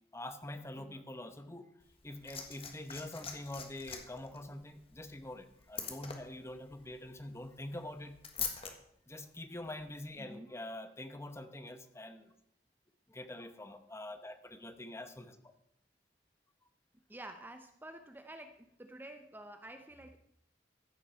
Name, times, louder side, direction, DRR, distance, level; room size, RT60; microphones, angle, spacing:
voice 1, 0.1-1.7 2.0-8.2 9.1-12.3 13.1-15.5, left 1 dB, 15° left, 9 dB, 0.9 m, -45 dB
Liquid, 1.8-8.7 9.8-9.9, left 7 dB, 35° left, 1.5 m, -44 dB
voice 2, 10.2-10.5 17.1-20.2, right 1 dB, 10° right, 6 dB, 0.7 m, -50 dB
14.5 x 7.3 x 5.6 m, 0.73 s
head